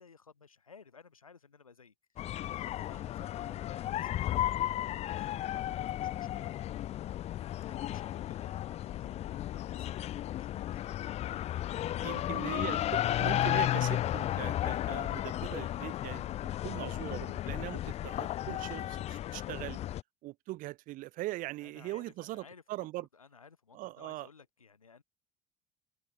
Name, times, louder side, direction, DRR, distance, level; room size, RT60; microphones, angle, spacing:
voice 1, 0.0-6.9 7.7-10.8 11.9-12.8 21.6-25.0, left 5 dB, 80° left, 3.2 m, -57 dB
sound 1, 2.2-20.0, left 13 dB, 35° left, 0.6 m, -34 dB
voice 2, 12.0-19.8 20.2-23.1 23.7-24.3, right 18 dB, 50° right, 1.7 m, -41 dB
sound 2, 12.6-19.2, right 2 dB, 10° right, 7.5 m, -63 dB
figure-of-eight pair, 60°, 17 cm